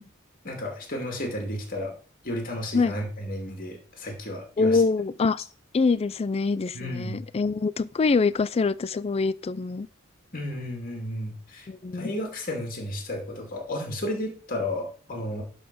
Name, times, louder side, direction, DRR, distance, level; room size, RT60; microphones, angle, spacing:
voice 1, 0.4-1.9 2.2-4.8 6.7-7.2 10.3-11.7 11.9-15.4, left 1 dB, 45° left, 2.5 m, -33 dB
voice 2, 4.6-5.4 5.7-9.9 11.7-12.1, left 4 dB, 30° left, 0.3 m, -24 dB
11.0 x 4.1 x 6.1 m
head